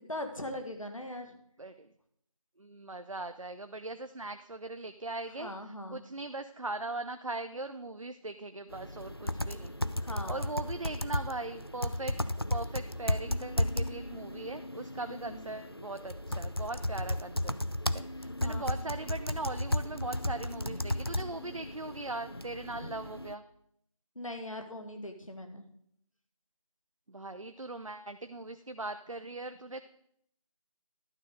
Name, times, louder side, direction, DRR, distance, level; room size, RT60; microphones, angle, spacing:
voice 1, 0.1-1.4 5.4-6.0 10.0-10.4 15.1-15.5 18.4-18.6 24.2-25.6, left 1 dB, 70° left, 5 dB, 1.6 m, -40 dB
voice 2, 1.6-1.9 2.6-5.5 5.9-9.7 10.3-17.5 17.9-23.4 27.1-29.8, right 2 dB, 65° right, 8 dB, 0.6 m, -40 dB
sound 1, 8.7-23.3, left 1 dB, 45° left, 0.4 m, -34 dB
11.5 x 6.4 x 5.1 m, 0.70 s
figure-of-eight pair, 175°, 18 cm